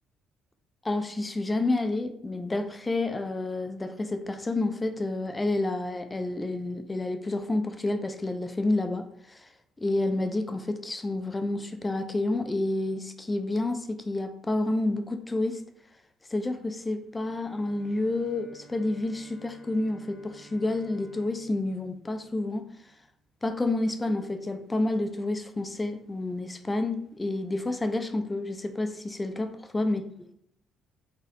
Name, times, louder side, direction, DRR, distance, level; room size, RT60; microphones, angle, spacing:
voice 1, 0.8-9.5 9.8-15.6 16.3-22.7 23.4-30.0, left 2 dB, 20° left, 8 dB, 0.5 m, -29 dB
Bowed string instrument, 17.2-23.1, right 2 dB, 15° right, 1.3 m, -55 dB
4.0 x 3.9 x 2.5 m, 0.69 s
figure-of-eight pair, 45°, 0 cm